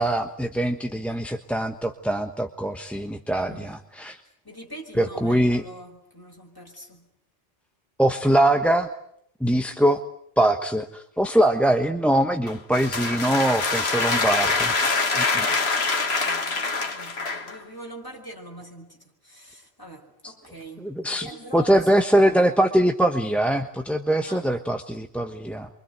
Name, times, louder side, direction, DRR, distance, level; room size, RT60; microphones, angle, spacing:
voice 1, 0.0-4.2 5.0-5.6 8.0-8.9 9.4-10.0 10.4-14.8 15.1-15.2 20.2-20.3 20.8-21.3 21.5-25.7, right 1 dB, ahead, 1.2 m, -22 dB
voice 2, 3.3-3.8 4.4-7.1 9.5-9.7 15.4-15.7 16.0-21.9 22.2-22.5 24.2-24.5, right 1 dB, 20° left, 5.5 m, -43 dB
sound 1, 12.5-17.6, left 3 dB, 80° left, 2.1 m, -24 dB
28.5 x 24.5 x 8.0 m
omnidirectional pair, 1.1 m